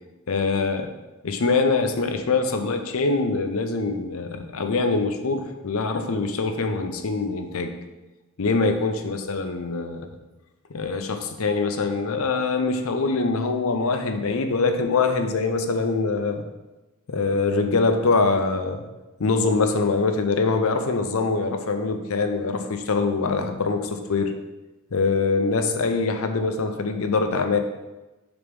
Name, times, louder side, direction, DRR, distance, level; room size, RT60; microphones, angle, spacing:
voice 1, 0.3-0.9 1.2-7.7 8.4-10.1 10.7-16.4 17.1-18.8 19.2-24.3 24.9-27.6, left 4 dB, 70° left, 7 dB, 0.6 m, -23 dB
6.7 x 3.0 x 5.2 m, 1.1 s
head